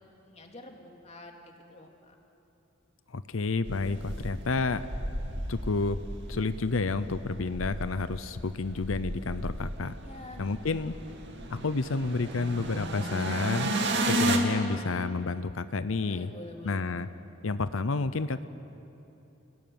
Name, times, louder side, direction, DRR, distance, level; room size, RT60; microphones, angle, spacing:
voice 1, 0.2-2.1 10.0-11.2 16.0-17.1, left 1 dB, 35° left, 2 dB, 2.8 m, -48 dB
voice 2, 3.1-4.9 5.5-6.0 6.3-9.9 10.4-10.9 11.5-13.8 14.1-16.3 16.6-17.1 17.4-18.5, left 3 dB, 85° left, 13 dB, 0.7 m, -30 dB
sound 1, 3.6-14.4, right 1 dB, 60° right, 2.6 m, -34 dB
29.5 x 17.5 x 9.4 m, 3.0 s
head